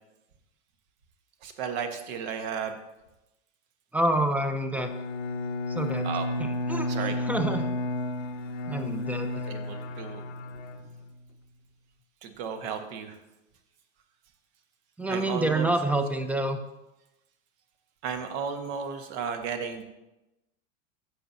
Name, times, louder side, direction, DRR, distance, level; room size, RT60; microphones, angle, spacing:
voice 1, 1.4-2.8 6.0-6.3 6.9-7.1 9.5-10.2 12.2-13.2 15.1-15.7 18.0-19.8, right 6 dB, 55° right, 7 dB, 1.3 m, -34 dB
voice 2, 3.9-4.9 5.7-6.1 6.4-7.7 8.7-9.4 15.0-16.6, right 1 dB, 5° right, 7 dB, 0.6 m, -28 dB
Bowed string instrument, 4.7-11.4, left 1 dB, 65° left, 0.9 m, -32 dB
14.5 x 6.0 x 2.7 m, 0.95 s
figure-of-eight pair, 85°, 40 cm